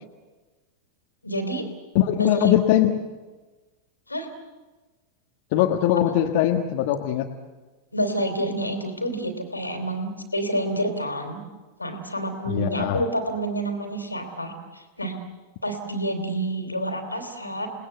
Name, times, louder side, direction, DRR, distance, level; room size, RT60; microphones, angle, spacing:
voice 1, 1.2-1.6 2.2-2.6 4.1-4.3 7.9-11.4 11.8-15.1 15.6-17.7, right 1 dB, 85° left, 7 dB, 3.2 m, -28 dB
voice 2, 1.9-3.0 5.5-7.3 12.5-13.0, left 12 dB, 50° left, 2 dB, 1.5 m, -21 dB
29.0 x 19.5 x 8.1 m, 1.2 s
figure-of-eight pair, 90°, 0 cm